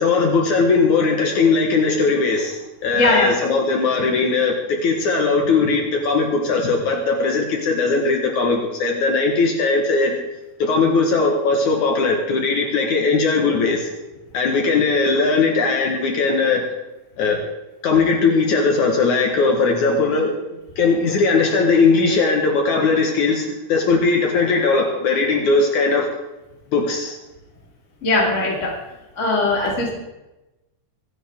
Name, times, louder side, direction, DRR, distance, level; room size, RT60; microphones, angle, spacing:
voice 1, 0.0-10.2 10.6-13.9 14.3-16.6 17.2-17.4 17.8-20.3 20.8-26.1 26.7-27.2, left 4 dB, 65° left, 2 dB, 2.8 m, -19 dB
voice 2, 2.9-3.3 28.0-28.7 29.2-29.9, left 2 dB, 25° left, -3 dB, 2.7 m, -19 dB
25.0 x 10.0 x 3.7 m, 1.0 s
omnidirectional pair, 3.8 m